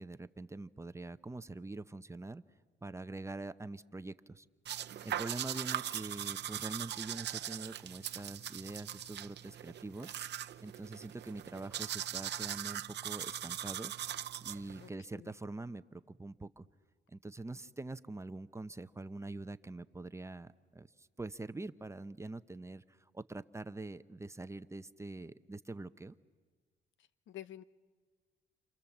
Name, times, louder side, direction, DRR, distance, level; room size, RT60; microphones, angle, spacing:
voice 1, 0.0-2.4 2.8-4.5 5.0-10.1 10.6-13.9 14.4-16.7 17.1-22.8 23.1-26.2, right 2 dB, 15° right, 12 dB, 0.7 m, -44 dB
sound 1, 4.7-14.9, right 11 dB, 60° right, 0.8 m, -40 dB
voice 2, 14.8-15.3 27.0-27.6, left 13 dB, 70° left, 15 dB, 0.8 m, -50 dB
29.5 x 27.5 x 7.3 m, 1.5 s
cardioid pair, 90°, 20 cm